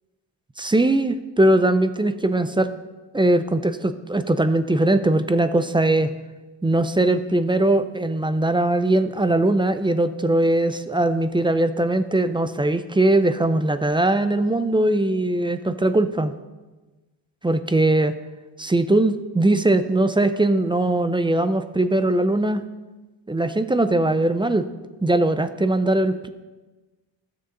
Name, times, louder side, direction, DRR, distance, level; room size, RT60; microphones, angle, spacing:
voice 1, 0.6-2.7 3.1-6.1 6.6-16.3 17.4-18.1 18.6-22.6 23.3-24.6 25.0-26.3, right 1 dB, 10° right, 11 dB, 0.4 m, -20 dB
20.0 x 6.7 x 3.8 m, 1.2 s
cardioid pair, 130°, 46 cm